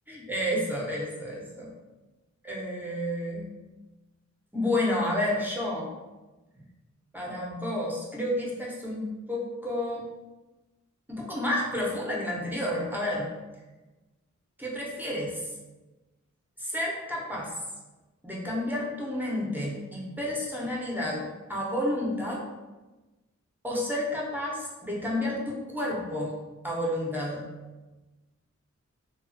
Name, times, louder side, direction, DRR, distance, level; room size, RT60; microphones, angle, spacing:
voice 1, 0.1-1.7 2.4-3.5 4.5-5.9 7.1-10.0 11.1-13.3 14.6-15.6 16.6-17.6 18.2-22.5 23.6-26.3 26.6-27.5, left 1 dB, 5° right, -4 dB, 0.7 m, -30 dB
2.9 x 2.3 x 2.6 m, 1.1 s
wide cardioid pair, 65°, 30 cm